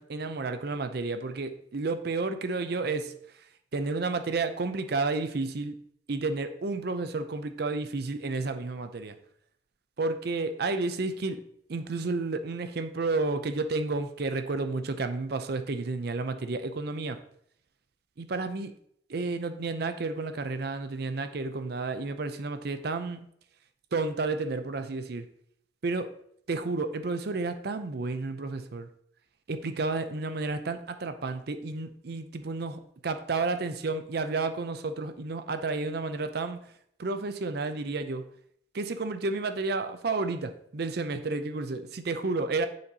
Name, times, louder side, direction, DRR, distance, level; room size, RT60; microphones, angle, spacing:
voice 1, 0.0-3.1 3.7-5.8 6.1-9.2 10.0-11.4 11.7-17.2 18.2-18.7 19.1-23.2 23.9-25.3 25.8-26.1 26.5-28.9 29.5-36.7 37.0-38.2 38.7-42.7, right 3 dB, 55° right, 9 dB, 0.6 m, -31 dB
9.3 x 4.3 x 2.8 m, 0.68 s
head